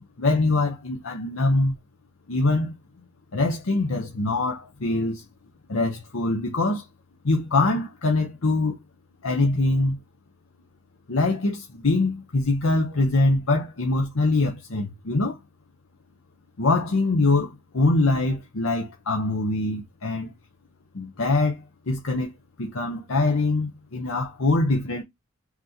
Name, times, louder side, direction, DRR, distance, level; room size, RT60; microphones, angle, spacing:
voice 1, 0.2-1.8 2.3-2.7 3.3-5.2 5.7-6.8 7.2-8.8 9.2-10.0 11.1-15.4 16.6-20.3 20.9-21.6 21.9-22.3 22.6-25.0, left 2 dB, 80° left, 0.8 m, -23 dB
5.9 x 2.9 x 2.7 m
head